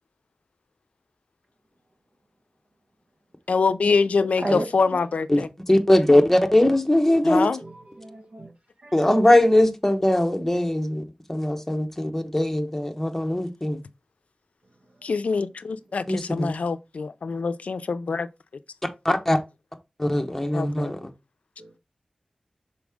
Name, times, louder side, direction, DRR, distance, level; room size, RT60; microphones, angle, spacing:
voice 1, 3.5-5.5 7.2-7.6 15.0-18.3 20.5-20.9, left 4 dB, 80° left, 0.5 m, -25 dB
voice 2, 5.7-7.5 8.9-11.0 11.3-13.8 16.1-16.5 19.0-19.4 20.0-21.0, left 1 dB, 10° left, 1.0 m, -20 dB
voice 3, 7.1-7.7 8.0-8.5 8.8-8.9 21.6-21.7, right 1 dB, 60° right, 1.3 m, -33 dB
6.1 x 4.6 x 3.6 m
wide cardioid pair, 90°, 2 cm